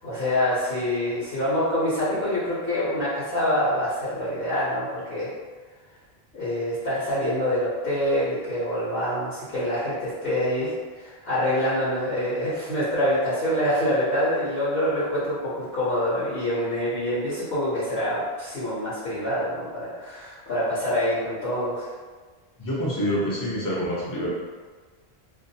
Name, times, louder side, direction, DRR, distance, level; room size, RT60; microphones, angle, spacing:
voice 1, 0.0-5.3 6.3-21.9, left 1 dB, 60° left, -11 dB, 1.0 m, -26 dB
voice 2, 22.6-24.3, equal, 25° left, -7 dB, 0.6 m, -26 dB
2.5 x 2.3 x 2.7 m, 1.4 s
omnidirectional pair, 1.1 m